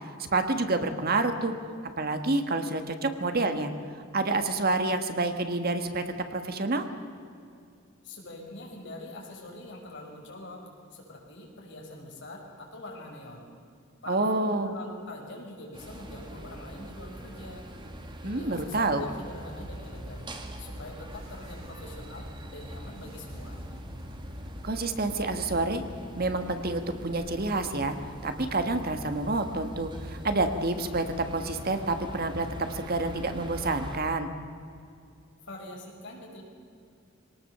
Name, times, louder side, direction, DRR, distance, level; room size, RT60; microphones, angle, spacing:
voice 1, 0.2-1.5 2.0-3.7 4.1-6.0 6.3-6.9 14.1-14.7 18.2-19.0 24.6-25.8 26.2-27.9 28.2-34.3, right 2 dB, 50° right, 7 dB, 1.6 m, -28 dB
voice 2, 8.0-13.5 14.0-17.7 18.2-20.3 20.6-23.6 35.4-36.4, left 1 dB, 65° left, -1 dB, 5.6 m, -44 dB
sound 1, 15.7-34.0, equal, 25° right, 1.9 m, -42 dB
sound 2, 19.0-24.6, left 1 dB, 75° right, 6.7 m, -49 dB
23.5 x 19.0 x 6.8 m, 2.4 s
head